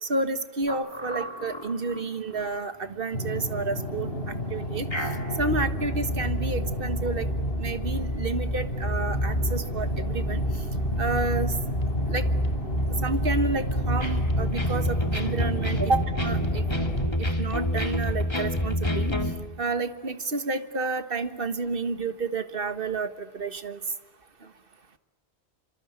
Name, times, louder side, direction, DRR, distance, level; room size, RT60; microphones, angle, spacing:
voice 1, 0.0-4.1 4.5-4.9 5.4-7.3 7.6-10.4 11.0-11.5 12.1-12.3 13.0-16.6 17.4-19.1 19.6-23.8, right 3 dB, 60° right, 10 dB, 1.8 m, -30 dB
sound 1, 0.7-2.5 2.9-3.0 3.4-3.5 4.3-19.3, equal, 25° left, 2.5 m, -29 dB
sound 2, 3.1-17.1, equal, 65° left, 4.3 m, -32 dB
26.0 x 26.0 x 8.7 m, 1.1 s
omnidirectional pair, 1.1 m